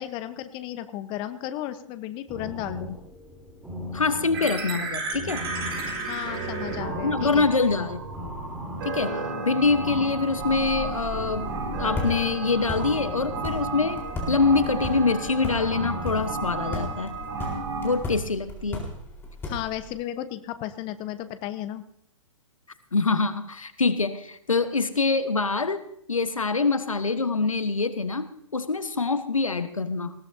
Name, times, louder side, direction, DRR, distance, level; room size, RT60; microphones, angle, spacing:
voice 1, 0.0-3.0 6.1-7.8 19.5-21.8, left 12 dB, 30° left, 12 dB, 0.9 m, -34 dB
sound 1, 2.3-16.3, left 1 dB, 5° right, 3.4 m, -39 dB
voice 2, 3.9-5.5 6.9-8.0 8.8-11.5 11.8-17.1 17.8-18.9 22.9-25.8 26.1-30.1, left 4 dB, 85° left, 12 dB, 1.2 m, -25 dB
sound 2, 4.3-18.0, right 3 dB, 50° right, 4.5 m, -33 dB
sound 3, 10.4-19.9, left 1 dB, 15° left, 4.1 m, -36 dB
20.0 x 17.5 x 2.7 m, 0.73 s
figure-of-eight pair, 115°, 17 cm